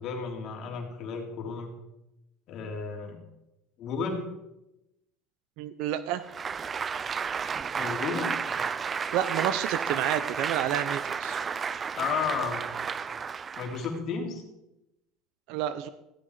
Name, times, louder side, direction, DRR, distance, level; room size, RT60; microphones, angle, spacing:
voice 1, 0.0-1.7 2.5-3.2 3.8-4.3 7.8-8.4 12.0-12.7 13.6-14.4, left 5 dB, 45° left, 2 dB, 3.6 m, -33 dB
voice 2, 5.6-6.2 9.1-11.4 15.5-15.9, right 11 dB, 65° right, 13 dB, 0.8 m, -29 dB
Applause, 6.2-14.0, right 6 dB, 25° right, 0.5 m, -32 dB
15.5 x 12.5 x 5.0 m, 0.90 s
cardioid pair, 145°, 0 cm